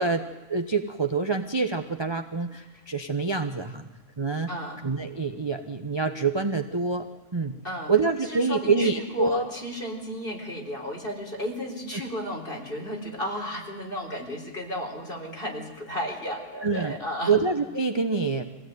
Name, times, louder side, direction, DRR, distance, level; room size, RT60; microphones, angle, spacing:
voice 1, 0.0-3.9 4.2-4.5 4.8-7.6 7.9-9.5 16.6-17.0 17.3-18.4, right 4 dB, 20° right, 6 dB, 0.8 m, -26 dB
voice 2, 4.5-4.8 7.6-7.9 8.3-17.4, equal, 40° left, 0 dB, 4.3 m, -33 dB
24.0 x 17.0 x 9.4 m, 1.2 s
omnidirectional pair, 1.5 m